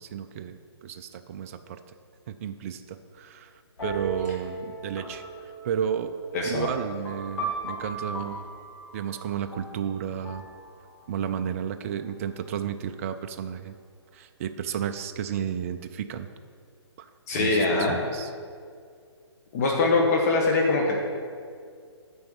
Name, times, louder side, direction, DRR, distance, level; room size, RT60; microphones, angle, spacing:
voice 1, 0.0-1.8 2.3-3.5 3.8-6.1 6.4-8.5 8.9-10.5 11.1-13.8 14.1-16.3 17.0-17.1 17.3-18.3, right 8 dB, 30° right, 8 dB, 0.4 m, -32 dB
sound 1, 3.8-11.3, right 2 dB, 75° left, 2.3 m, -38 dB
voice 2, 6.3-6.7 17.3-18.0 19.5-21.0, left 3 dB, 35° left, 0 dB, 1.2 m, -23 dB
9.6 x 4.4 x 7.1 m, 2.2 s
hypercardioid pair, 155°, 15 cm